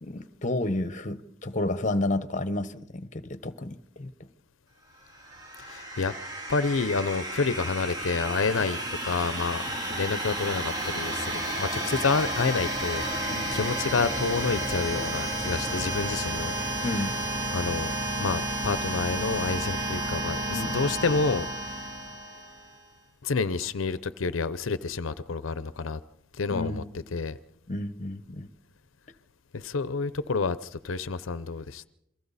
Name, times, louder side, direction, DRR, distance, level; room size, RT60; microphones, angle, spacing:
voice 1, 0.0-4.1 13.3-13.5 16.8-17.1 20.5-20.8 26.5-26.8 27.7-28.5, left 2 dB, 40° left, 1.0 m, -31 dB
sound 1, 5.1-22.7, right 1 dB, 20° right, 3.4 m, -32 dB
voice 2, 5.6-6.1 6.5-16.9 17.5-17.9 18.2-21.9 23.2-26.0 26.3-26.8 27.1-27.4 29.5-31.8, left 4 dB, 80° left, 0.7 m, -29 dB
29.0 x 23.0 x 4.1 m
head